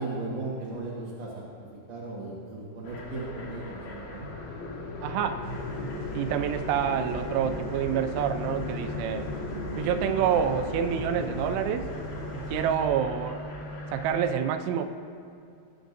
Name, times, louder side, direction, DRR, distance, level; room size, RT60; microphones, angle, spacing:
voice 1, 0.0-4.3, right 2 dB, 65° right, -6 dB, 1.6 m, -36 dB
sound 1, 2.8-14.3, left 2 dB, 65° left, 3.0 m, -37 dB
voice 2, 5.0-5.4 6.1-9.3 9.8-11.9 12.3-13.4 13.9-14.9, right 8 dB, 85° right, 8 dB, 3.0 m, -27 dB
sound 2, 5.4-12.8, equal, 30° left, 1.7 m, -41 dB
20.0 x 10.5 x 2.6 m, 2.5 s
omnidirectional pair, 5.4 m